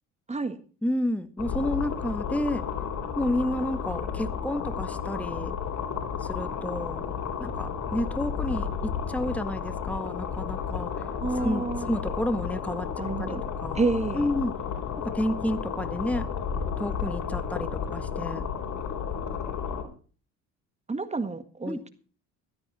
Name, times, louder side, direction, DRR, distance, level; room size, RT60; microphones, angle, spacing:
voice 1, 0.8-2.6 3.1-5.5 6.2-7.0 7.4-10.9 11.4-13.8 14.1-14.5 15.0-16.3 16.8-18.4 21.7-21.8, left 1 dB, 5° left, 11 dB, 1.6 m, -30 dB
sound 1, 1.4-19.8, left 7 dB, 60° left, 4.3 m, -32 dB
voice 2, 11.2-11.9 13.0-13.4 13.7-14.3 20.9-21.9, right 3 dB, 20° right, 11 dB, 1.8 m, -29 dB
16.0 x 12.5 x 4.2 m, 0.39 s
supercardioid pair, 90°, 33 cm